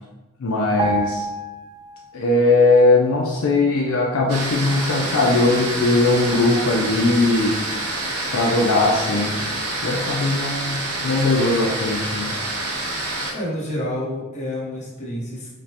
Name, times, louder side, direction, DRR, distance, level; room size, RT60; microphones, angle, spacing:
voice 1, 0.4-1.2 2.1-7.5 8.3-9.5 9.8-12.3, left 2 dB, 65° left, -2 dB, 0.5 m, -19 dB
sound 1, 0.8-2.4 2.7-2.9, right 1 dB, 20° right, 0.4 m, -28 dB
sound 2, 4.3-13.3, right 2 dB, 90° right, 0.8 m, -27 dB
voice 2, 13.3-15.5, left 1 dB, 30° left, -5 dB, 1.0 m, -29 dB
5.0 x 2.2 x 2.9 m, 1.1 s
head